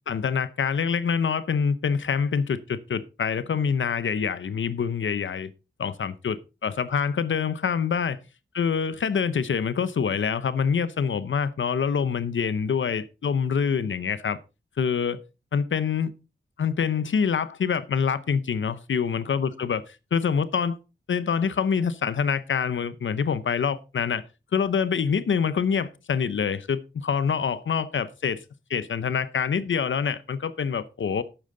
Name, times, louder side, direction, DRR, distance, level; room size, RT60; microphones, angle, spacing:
voice 1, 0.1-5.5 5.8-8.2 8.5-14.4 14.8-15.2 15.5-16.1 16.6-19.8 20.1-20.8 21.1-24.2 24.5-28.4 28.7-31.2, left 6 dB, 80° left, 0.8 m, -26 dB
12.0 x 8.9 x 3.9 m
wide cardioid pair, 120°, 20 cm